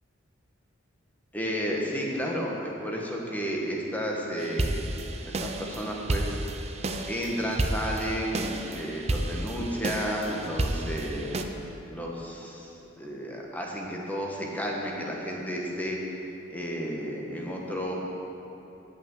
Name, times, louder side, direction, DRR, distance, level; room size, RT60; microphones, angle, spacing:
voice 1, 1.3-6.6 7.1-11.4 11.9-16.0 16.5-17.9, equal, 10° left, -2 dB, 1.1 m, -32 dB
sound 1, 4.4-11.4, right 2 dB, 30° right, 0.5 m, -31 dB
8.7 x 5.7 x 7.7 m, 3.0 s
head